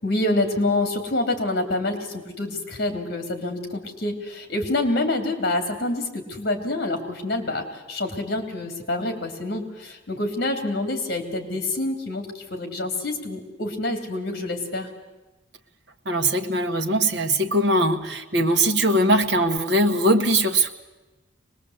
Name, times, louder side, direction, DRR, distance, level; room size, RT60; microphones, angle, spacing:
voice 1, 0.0-14.9, left 2 dB, 50° left, 6 dB, 3.3 m, -27 dB
voice 2, 16.0-20.7, right 1 dB, 60° right, 4 dB, 1.6 m, -21 dB
24.0 x 20.0 x 8.2 m, 1.1 s
head